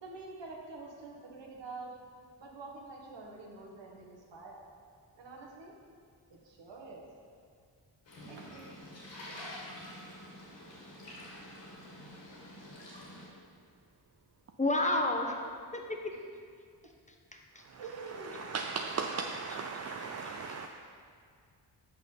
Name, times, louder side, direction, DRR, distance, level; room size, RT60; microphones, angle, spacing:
voice 1, 0.0-1.9 2.4-4.6 5.2-5.7 6.3-7.1 8.3-8.7 16.1-16.2 17.7-18.4, right 3 dB, 70° right, -1 dB, 1.5 m, -47 dB
sound 1, 8.0-13.3, left 1 dB, 80° left, 2.1 m, -47 dB
voice 2, 14.6-15.4 15.7-16.0, left 2 dB, 15° left, 2 dB, 0.9 m, -29 dB
voice 3, 17.6-20.7, right 4 dB, 35° right, 3 dB, 0.5 m, -38 dB
6.1 x 5.7 x 5.5 m, 2.2 s
cardioid pair, 55°, 44 cm